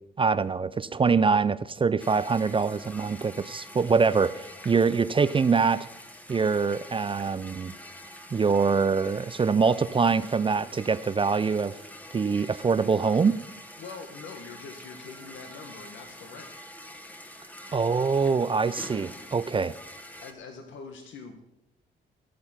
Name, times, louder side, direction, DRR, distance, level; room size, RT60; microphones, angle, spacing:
voice 1, 0.2-5.9 6.3-7.7 8.3-11.7 12.1-13.4 17.7-19.8, right 5 dB, 25° right, 15 dB, 0.5 m, -24 dB
sound 1, 2.0-20.3, equal, 10° left, 1.4 m, -46 dB
voice 2, 13.8-16.8 20.2-21.4, left 5 dB, 75° left, 5 dB, 1.5 m, -44 dB
16.5 x 6.8 x 5.8 m, 0.86 s
cardioid pair, 90°, 20 cm